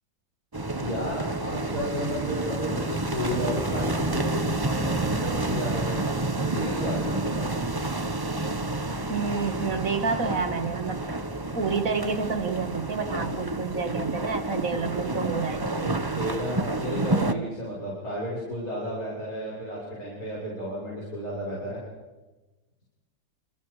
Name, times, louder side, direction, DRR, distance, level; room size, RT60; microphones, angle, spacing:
sound 1, 0.5-17.3, right 2 dB, 15° right, 0.8 m, -29 dB
voice 1, 0.8-6.1 6.3-7.4 13.2-13.4 16.2-21.8, equal, 45° left, -6 dB, 7.5 m, -32 dB
sound 2, 1.1-8.1, left 4 dB, 85° left, 7.8 m, -48 dB
voice 2, 9.1-11.0 11.5-16.3 16.8-17.4, right 5 dB, 45° right, 8 dB, 2.1 m, -29 dB
28.5 x 27.5 x 5.0 m, 1.2 s
omnidirectional pair, 2.1 m